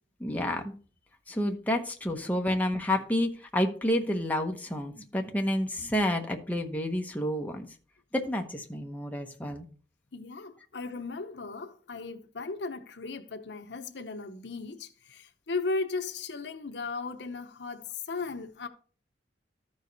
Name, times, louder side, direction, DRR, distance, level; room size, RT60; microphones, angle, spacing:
voice 1, 0.2-0.7 1.3-7.7 8.1-9.6, left 1 dB, 10° left, 0.9 m, -29 dB
voice 2, 10.1-18.7, left 3 dB, 70° left, 0.8 m, -36 dB
13.5 x 4.8 x 4.0 m
head